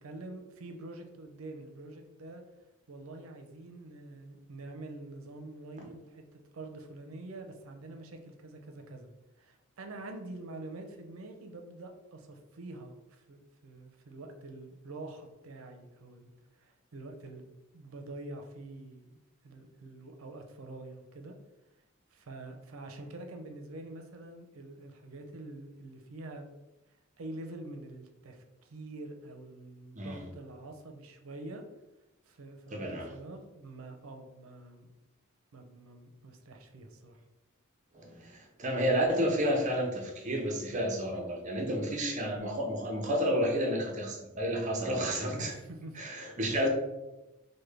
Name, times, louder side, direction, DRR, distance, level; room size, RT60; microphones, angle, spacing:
voice 1, 0.0-2.4 2.9-9.1 9.4-16.3 16.6-19.2 19.4-21.4 22.1-26.5 27.2-31.6 32.3-34.9 35.5-37.2 45.3-46.0 46.5-46.6, right 2 dB, 85° right, 5 dB, 0.5 m, -46 dB
voice 2, 29.9-30.3 32.7-33.2 37.9-45.5 45.9-46.7, equal, 35° right, 1 dB, 0.6 m, -31 dB
3.4 x 2.1 x 3.2 m, 0.98 s
head